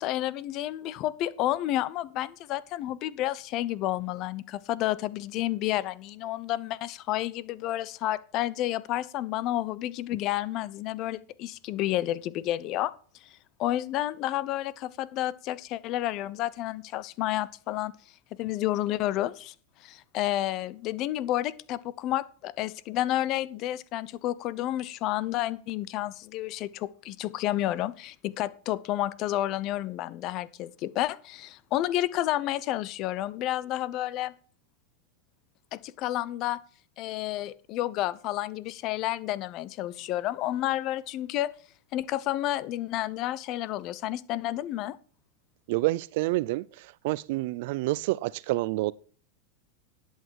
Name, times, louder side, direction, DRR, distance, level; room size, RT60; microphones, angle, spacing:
voice 1, 0.0-12.9 13.6-17.9 18.4-19.5 19.8-34.3 35.7-36.6 37.0-41.5 41.9-45.0, left 14 dB, 45° left, 0.8 m, -30 dB
voice 2, 45.7-48.9, right 19 dB, 65° right, 0.5 m, -28 dB
11.0 x 8.4 x 4.7 m
supercardioid pair, 120°, 0 cm